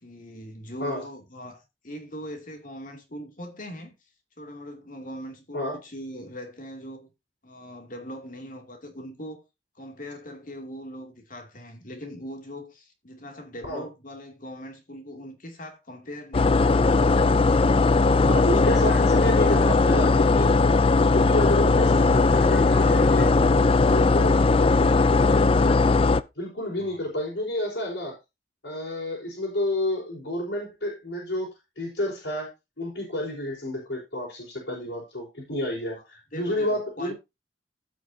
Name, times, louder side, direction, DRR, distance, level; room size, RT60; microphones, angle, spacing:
voice 1, 0.0-3.9 4.4-7.1 7.4-9.4 9.7-17.1 18.0-19.1 26.8-27.0 35.9-36.0 36.3-37.1, equal, 50° left, 2.7 m, -41 dB
sound 1, 16.3-26.2, left 3 dB, 30° left, 0.4 m, -19 dB
voice 2, 18.3-20.5 20.9-23.3 23.8-25.9 26.3-28.2 28.6-31.5 31.8-32.5 32.8-37.1, left 1 dB, 80° left, 4.9 m, -30 dB
16.5 x 6.3 x 2.8 m
head